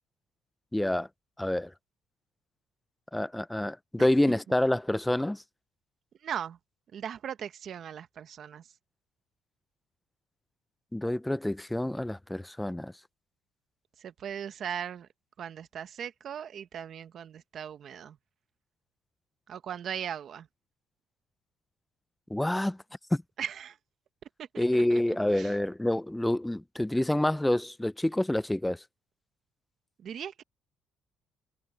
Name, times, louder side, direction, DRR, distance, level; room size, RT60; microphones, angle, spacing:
voice 1, 0.7-1.1 1.4-1.7 3.1-5.4 10.9-12.9 22.3-22.8 23.1-23.2 24.6-28.8, left 1 dB, 5° left, 0.5 m, -27 dB
voice 2, 6.2-6.6 6.9-8.7 14.0-15.1 15.4-18.2 19.5-20.5 23.4-23.8 24.4-25.6 30.0-30.4, right 8 dB, 50° right, 1.0 m, -38 dB
cardioid pair, 115°, 0 cm